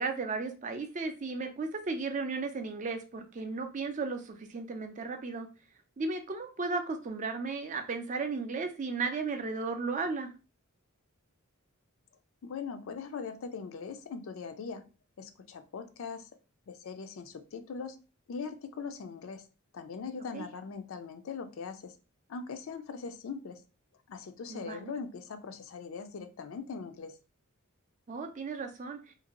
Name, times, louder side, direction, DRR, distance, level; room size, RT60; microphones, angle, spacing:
voice 1, 0.0-5.5 6.0-10.3 20.3-20.5 24.5-24.9 28.1-29.0, right 4 dB, 35° right, 6 dB, 0.4 m, -35 dB
voice 2, 12.4-14.8 15.2-16.3 16.7-18.0 18.3-19.5 19.7-21.9 22.3-23.6 24.1-27.2, left 5 dB, 65° left, 8 dB, 0.4 m, -41 dB
2.7 x 2.5 x 2.9 m, 0.34 s
head